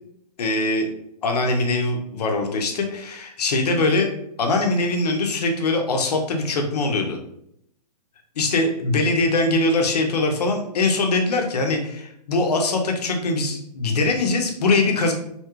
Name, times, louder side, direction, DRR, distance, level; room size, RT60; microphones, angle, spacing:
voice 1, 0.4-0.9 1.2-4.1 4.4-7.2 8.4-15.1, left 2 dB, 70° left, 3 dB, 0.8 m, -22 dB
2.8 x 2.3 x 3.0 m, 0.74 s
hypercardioid pair, 145°, 21 cm